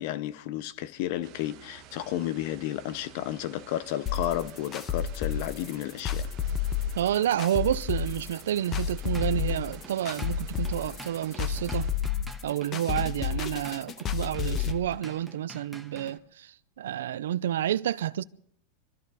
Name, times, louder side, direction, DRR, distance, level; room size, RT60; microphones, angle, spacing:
voice 1, 0.0-6.3, left 13 dB, 60° left, 0.7 m, -32 dB
sound 1, 1.2-12.2, right 8 dB, 45° right, 1.6 m, -50 dB
sound 2, 4.1-14.7, left 8 dB, 30° left, 1.2 m, -30 dB
voice 2, 6.9-11.9 12.4-18.2, right 11 dB, 90° right, 0.6 m, -29 dB
Drum kit / Drum, 8.8-16.2, right 1 dB, ahead, 1.4 m, -48 dB
24.5 x 13.5 x 4.1 m
supercardioid pair, 135°, 0 cm